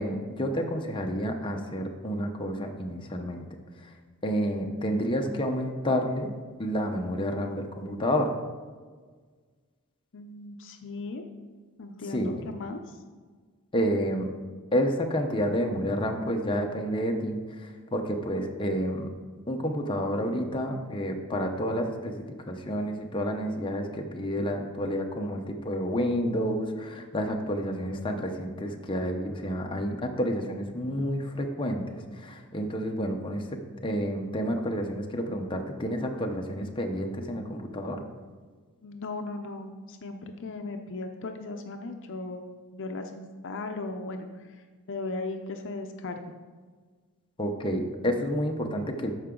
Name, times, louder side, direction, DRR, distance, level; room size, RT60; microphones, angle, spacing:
voice 1, 0.0-3.4 3.8-3.9 4.2-6.3 6.6-8.3 12.1-12.5 13.7-14.3 14.7-19.1 19.5-33.5 33.8-38.0 47.4-49.1, equal, 20° left, 2 dB, 0.7 m, -29 dB
voice 2, 10.1-11.2 11.8-13.0 38.8-42.5 42.7-44.6 44.9-46.5, left 3 dB, 55° left, 5 dB, 0.6 m, -37 dB
12.5 x 4.8 x 3.8 m, 1.5 s
head